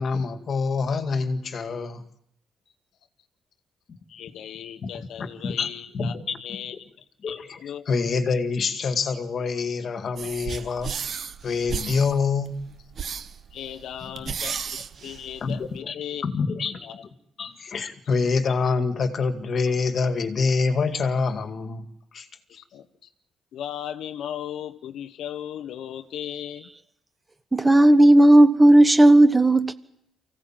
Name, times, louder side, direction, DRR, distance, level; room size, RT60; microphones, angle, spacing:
voice 1, 0.0-2.0 3.9-4.0 4.8-4.9 5.2-5.7 5.9-6.4 7.2-7.6 7.9-11.0 11.4-12.8 15.4-16.0 16.2-16.9 17.4-21.9 22.1-22.3, left 4 dB, 50° left, 2.1 m, -26 dB
voice 2, 4.1-7.8 13.5-16.3 16.8-17.1 22.5-23.1 23.5-26.7, left 10 dB, 75° left, 1.0 m, -37 dB
sound 1, 10.2-15.8, right 7 dB, 55° right, 1.2 m, -34 dB
voice 3, 27.5-29.7, right 1 dB, 15° right, 1.2 m, -14 dB
24.5 x 16.0 x 7.5 m
cardioid pair, 90°, 0 cm